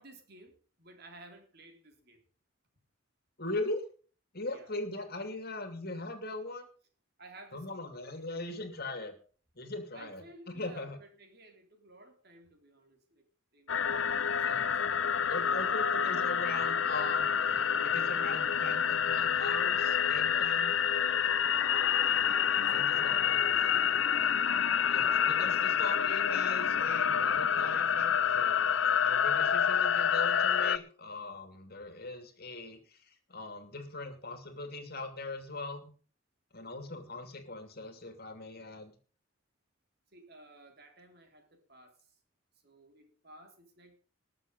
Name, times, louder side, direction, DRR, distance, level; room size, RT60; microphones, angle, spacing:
voice 1, 0.0-2.2 4.5-4.7 7.2-7.9 9.9-13.3 13.5-14.7 15.9-16.4 22.1-23.6 24.9-25.5 36.8-36.9 40.1-42.1 42.6-44.0, right 2 dB, 50° right, 4 dB, 3.5 m, -56 dB
voice 2, 3.4-3.8 4.3-6.7 7.5-9.1 9.6-11.0 14.5-14.9 15.3-17.6 17.8-20.8 22.0-22.3 22.7-23.7 24.9-28.6 29.0-35.9 36.5-38.9, left 2 dB, 45° left, 7 dB, 2.6 m, -40 dB
sound 1, 13.7-30.8, left 8 dB, 65° left, 0.7 m, -28 dB
20.5 x 7.1 x 5.3 m, 0.40 s
head